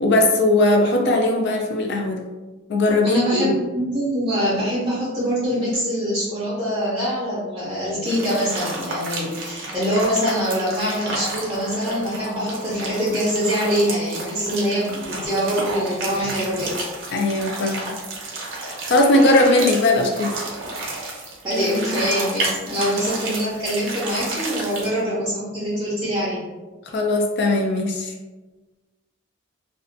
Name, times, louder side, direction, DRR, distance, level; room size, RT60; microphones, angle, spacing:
voice 1, 0.0-2.2 2.7-3.6 17.1-18.0 18.6-20.4 26.9-28.1, left 2 dB, 55° left, 3 dB, 0.3 m, -19 dB
voice 2, 3.0-16.8 21.4-26.4, equal, 20° right, -9 dB, 0.5 m, -24 dB
sound 1, 8.0-25.0, right 2 dB, 60° right, 0.6 m, -31 dB
2.5 x 2.2 x 2.4 m, 1.2 s
head